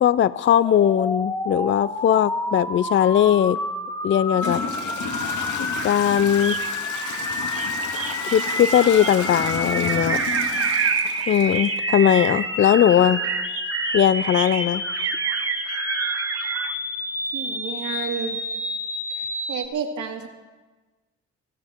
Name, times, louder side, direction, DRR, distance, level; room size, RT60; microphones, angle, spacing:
voice 1, 0.0-3.6 4.0-4.6 5.8-6.6 8.3-10.2 11.3-13.2 13.9-14.8, left 10 dB, 40° left, 17 dB, 0.5 m, -19 dB
sound 1, 0.6-19.7, left 1 dB, 10° left, 1.5 m, -29 dB
Toilet flush / Trickle dribble, 3.5-3.6 4.3-12.1, left 5 dB, 75° left, 2.3 m, -32 dB
sound 2, 6.1-16.7, right 8 dB, 50° right, 0.9 m, -29 dB
voice 2, 17.3-18.4 19.2-20.3, right 6 dB, 75° right, 2 dB, 2.1 m, -31 dB
19.0 x 11.5 x 4.5 m, 1.3 s
cardioid pair, 90°, 30 cm